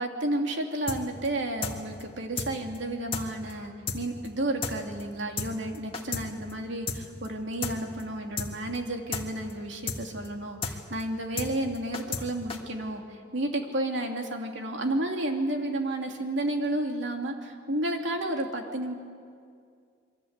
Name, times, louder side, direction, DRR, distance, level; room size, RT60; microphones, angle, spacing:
voice 1, 0.0-18.9, right 1 dB, 70° right, 2 dB, 2.8 m, -31 dB
sound 1, 0.9-1.3 1.6-1.7 2.0-2.1 2.4-2.5 2.7-2.8 3.1-3.2 3.5-3.6 3.9-4.0 4.2-4.3 4.6-4.7 5.0-5.1 5.4-5.5 5.7-6.2 6.5-6.6 6.9-7.0 7.2-7.3 7.6-7.7 8.0-8.1 8.4-8.5 8.7-8.8 9.1-9.2 9.5-9.6 9.9-10.0 10.2-10.3 10.6-10.7 11.0-11.1 11.4-11.5 11.7-12.2 12.5-12.6, left 4 dB, 30° left, 2.1 m, -32 dB
28.0 x 23.5 x 8.2 m, 2.2 s
head